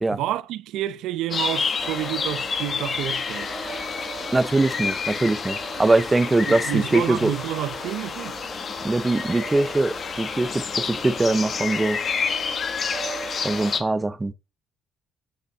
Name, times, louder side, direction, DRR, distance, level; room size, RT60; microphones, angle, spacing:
voice 1, 0.1-3.6 6.5-8.4, right 13 dB, 80° right, 0.8 m, -29 dB
sound 1, 1.3-13.8, left 5 dB, 30° left, 1.4 m, -29 dB
sound 2, 1.8-13.8, right 5 dB, 40° right, 3.1 m, -41 dB
voice 2, 4.3-7.3 8.8-12.0 13.4-14.3, right 2 dB, 10° right, 0.5 m, -22 dB
8.8 x 5.4 x 7.3 m
cardioid pair, 180°, 0 cm